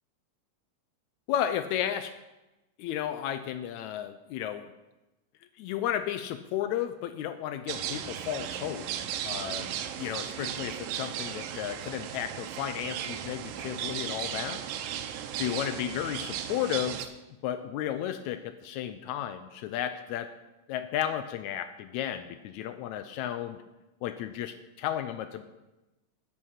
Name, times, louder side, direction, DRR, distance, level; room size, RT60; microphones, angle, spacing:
voice 1, 1.3-2.1 2.8-4.7 5.6-8.8 9.2-14.6 15.3-17.0 17.4-20.3 20.7-23.6 24.0-25.4, left 11 dB, 90° left, 10 dB, 1.6 m, -33 dB
sound 1, 7.7-17.1, right 10 dB, 90° right, 2.5 m, -36 dB
9.9 x 9.5 x 5.7 m, 1.0 s
omnidirectional pair, 3.9 m